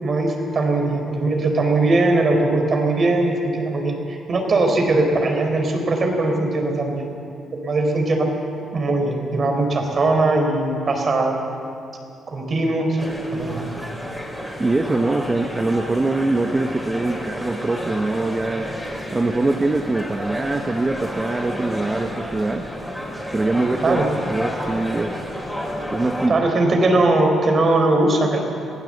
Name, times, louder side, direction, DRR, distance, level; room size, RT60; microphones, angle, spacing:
voice 1, 0.0-7.0 7.5-8.3 8.7-11.3 12.3-13.6 23.8-24.1 26.3-28.4, right 2 dB, 45° right, 3 dB, 4.4 m, -20 dB
sound 1, 13.0-26.3, equal, ahead, 4.8 m, -31 dB
voice 2, 14.6-18.7 19.1-22.7 23.3-24.0 24.3-25.2 25.9-26.4, right 2 dB, 25° right, 4 dB, 1.1 m, -23 dB
22.5 x 16.0 x 7.9 m, 2.6 s
cardioid pair, 90°, 0 cm